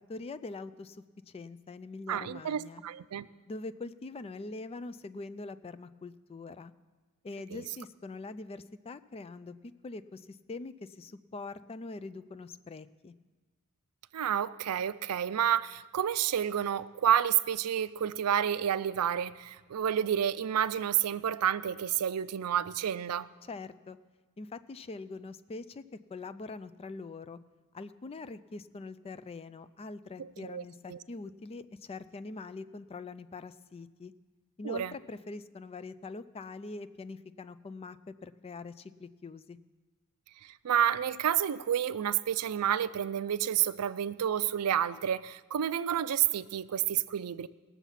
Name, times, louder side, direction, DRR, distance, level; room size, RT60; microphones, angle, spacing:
voice 1, 0.1-2.8 3.5-6.7 7.2-9.5 9.8-13.1 23.4-24.0 24.4-25.8 26.1-27.4 27.7-34.1 34.6-39.6, left 3 dB, 25° left, 13 dB, 0.3 m, -43 dB
voice 2, 2.1-3.3 7.5-7.6 14.1-23.3 30.2-30.6 30.9-31.0 34.6-34.9 40.4-47.5, right 10 dB, 90° right, 16 dB, 0.4 m, -30 dB
19.0 x 7.1 x 5.7 m, 1.3 s
head